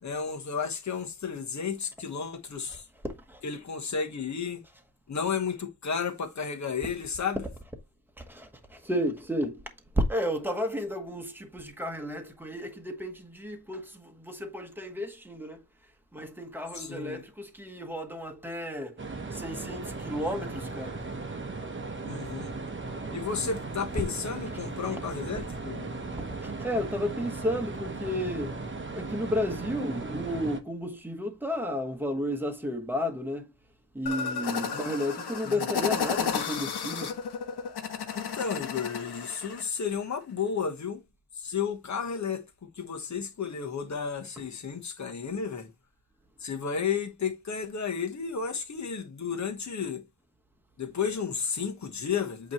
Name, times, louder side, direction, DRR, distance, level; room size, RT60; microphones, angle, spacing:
voice 1, 0.0-2.8 3.4-4.6 5.1-7.4 16.7-17.2 22.0-22.5 23.1-25.9 34.7-34.9 35.4-35.7 38.1-41.0 41.3-42.5 42.7-45.7 46.4-50.0 50.8-52.5, left 6 dB, 45° left, 1.3 m, -32 dB
voice 2, 8.2-9.6 10.0-15.6 16.1-19.0 19.3-21.0 24.9-25.0 26.4-28.6 28.9-33.5 33.9-37.2, equal, 5° right, 1.2 m, -32 dB
sound 1, 19.0-30.6, right 3 dB, 30° right, 1.0 m, -37 dB
sound 2, 34.1-39.7, left 6 dB, 70° left, 1.1 m, -32 dB
8.3 x 3.2 x 4.3 m
wide cardioid pair, 145°, 41 cm